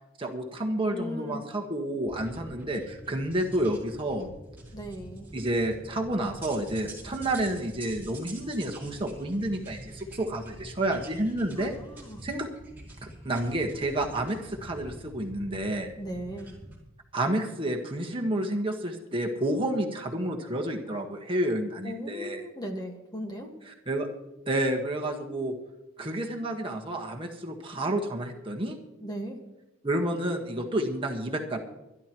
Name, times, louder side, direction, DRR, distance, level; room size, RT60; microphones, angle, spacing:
voice 1, 0.2-4.3 5.3-11.7 12.2-12.5 13.0-15.9 17.1-22.4 23.7-24.1 24.5-25.5 26.0-28.8 29.8-31.6, right 1 dB, 25° right, 1 dB, 1.5 m, -30 dB
voice 2, 0.9-1.4 4.7-5.3 11.6-12.2 16.0-16.5 21.8-23.5 29.0-29.5, equal, 20° left, 2 dB, 1.7 m, -37 dB
sound 1, 2.1-16.8, right 1 dB, 10° right, 4.7 m, -46 dB
25.5 x 11.5 x 3.1 m, 0.96 s
head